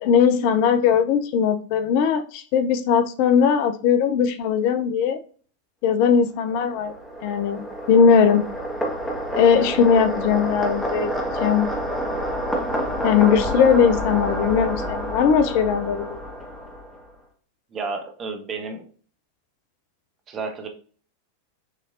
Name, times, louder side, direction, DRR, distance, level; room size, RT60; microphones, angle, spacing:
voice 1, 0.0-5.2 5.8-6.9 7.2-8.4 9.3-11.1 11.4-11.7 13.0-16.2, left 7 dB, 45° left, 9 dB, 0.5 m, -19 dB
sound 1, 6.4-17.1, equal, 5° left, 1.1 m, -28 dB
voice 2, 17.7-18.9 20.3-20.7, right 4 dB, 25° right, 4 dB, 0.9 m, -31 dB
6.6 x 3.2 x 2.4 m, 0.42 s
figure-of-eight pair, 90°, 0 cm